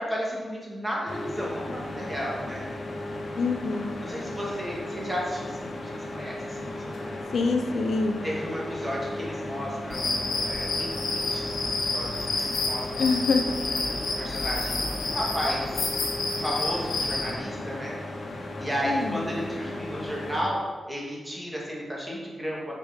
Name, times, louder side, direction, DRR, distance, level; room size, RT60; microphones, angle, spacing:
voice 1, 0.0-2.6 4.0-7.2 8.2-11.6 11.9-13.1 13.5-15.7 16.3-18.0 18.6-22.7, equal, 15° right, -4 dB, 2.5 m, -33 dB
sound 1, 1.1-20.4, left 1 dB, 50° left, 1.7 m, -36 dB
voice 2, 3.4-4.0 7.3-8.2 13.0-13.4 18.8-19.2, left 4 dB, 70° left, 5 dB, 0.7 m, -25 dB
sound 2, 9.9-17.3, left 3 dB, 85° left, 1.8 m, -29 dB
9.3 x 5.7 x 5.3 m, 1.4 s
wide cardioid pair, 140°, 0 cm